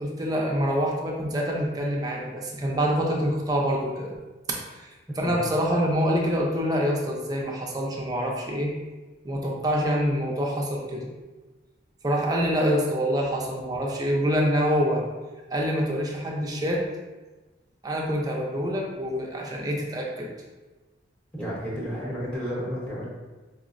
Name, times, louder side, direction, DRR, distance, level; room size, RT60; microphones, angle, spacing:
voice 1, 0.0-4.1 4.5-8.7 9.2-11.1 12.0-15.0 15.5-16.8 17.8-20.3, equal, 20° right, -1 dB, 0.4 m, -26 dB
voice 2, 21.3-23.1, equal, 5° left, -8 dB, 0.9 m, -32 dB
4.7 x 2.0 x 2.4 m, 1.2 s
head